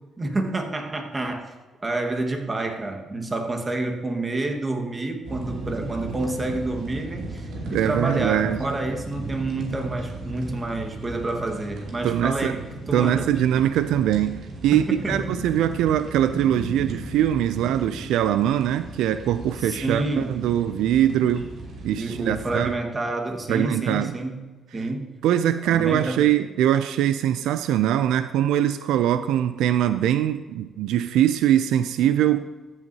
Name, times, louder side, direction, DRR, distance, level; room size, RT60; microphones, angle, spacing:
voice 1, 0.2-1.5 1.8-13.3 14.7-15.2 19.6-20.3 21.9-24.4 24.7-25.2 25.7-26.3, right 2 dB, 25° right, 3 dB, 1.6 m, -28 dB
sound 1, 5.2-22.7, right 2 dB, 70° right, 2.7 m, -36 dB
voice 2, 7.7-8.6 12.0-12.5 12.9-21.5 21.8-22.7 23.5-24.1 25.2-32.5, right 11 dB, 90° right, 12 dB, 0.3 m, -22 dB
14.5 x 8.0 x 2.8 m, 1.3 s
cardioid pair, 90°, 0 cm